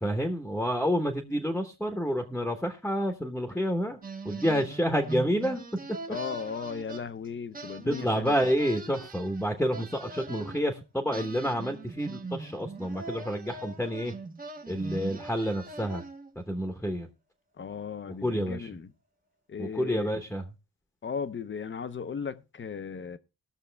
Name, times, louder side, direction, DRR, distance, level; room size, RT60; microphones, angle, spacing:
voice 1, 0.0-4.0 4.2-5.6 7.8-14.1 14.7-16.0 16.4-17.1 18.2-18.7 19.6-20.4, equal, 5° left, 1.0 m, -29 dB
sound 1, 4.0-7.3 7.5-10.6 11.1-16.4, right 3 dB, 25° right, 0.8 m, -41 dB
voice 2, 6.1-8.4 17.6-18.9 19.5-20.1 21.0-23.2, left 6 dB, 35° left, 0.6 m, -36 dB
19.0 x 6.6 x 3.3 m
wide cardioid pair, 175°, 36 cm